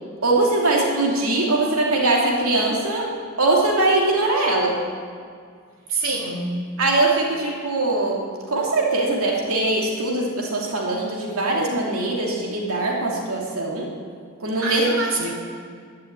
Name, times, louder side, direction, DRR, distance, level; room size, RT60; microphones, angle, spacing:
voice 1, 0.2-4.8 6.8-13.9 14.4-14.9 15.2-15.3, right 2 dB, 85° right, -2 dB, 2.8 m, -22 dB
voice 2, 5.9-6.6 14.6-15.3, right 2 dB, 70° right, -2 dB, 3.5 m, -25 dB
12.0 x 11.5 x 9.7 m, 2.1 s
head